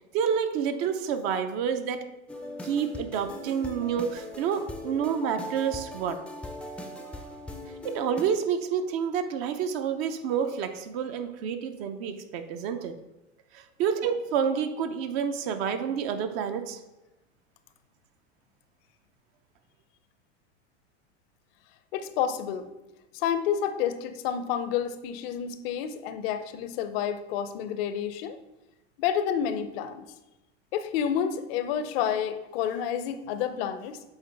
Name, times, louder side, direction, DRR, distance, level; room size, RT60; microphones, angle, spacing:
voice 1, 0.1-2.1 2.6-6.2 7.8-12.9 13.5-16.8, right 7 dB, 55° right, 9 dB, 0.7 m, -29 dB
sound 1, 2.3-8.2, left 1 dB, 5° left, 0.4 m, -40 dB
voice 2, 21.9-22.7 23.1-28.4 29.0-30.1 30.7-34.0, left 8 dB, 55° left, 11 dB, 0.6 m, -29 dB
8.1 x 3.6 x 3.4 m, 0.99 s
hypercardioid pair, 105°, 35 cm